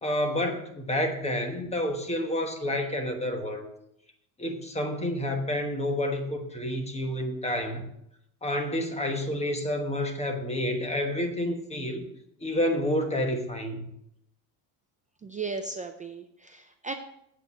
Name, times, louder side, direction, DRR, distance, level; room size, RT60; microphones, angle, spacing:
voice 1, 0.0-3.7 4.4-7.9 8.4-12.1 12.4-13.9, left 1 dB, 15° left, 4 dB, 1.2 m, -29 dB
voice 2, 15.2-16.9, right 4 dB, 15° right, 5 dB, 0.3 m, -36 dB
8.4 x 8.0 x 5.5 m, 0.77 s
cardioid pair, 135°, 49 cm